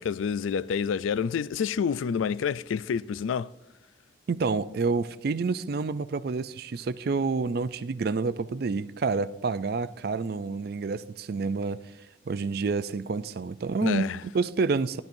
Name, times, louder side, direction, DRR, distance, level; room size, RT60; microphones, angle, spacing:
voice 1, 0.0-3.5 13.8-14.2, left 6 dB, 85° left, 0.3 m, -28 dB
voice 2, 4.3-11.9 12.3-15.0, right 4 dB, 50° right, 0.4 m, -28 dB
15.0 x 12.0 x 2.6 m
head